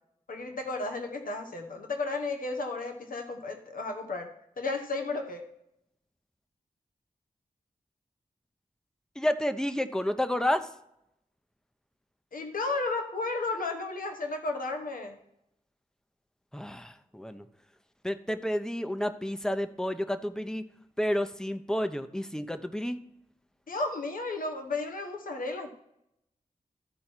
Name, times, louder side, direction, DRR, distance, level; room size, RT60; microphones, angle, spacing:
voice 1, 0.3-5.4 12.3-15.2 23.7-25.7, left 3 dB, 85° left, 4 dB, 1.1 m, -33 dB
voice 2, 9.2-10.7 16.5-17.5 18.0-20.6 21.0-23.0, equal, 5° left, 9 dB, 0.7 m, -30 dB
13.5 x 4.6 x 4.4 m, 0.79 s
wide cardioid pair, 70°, 14 cm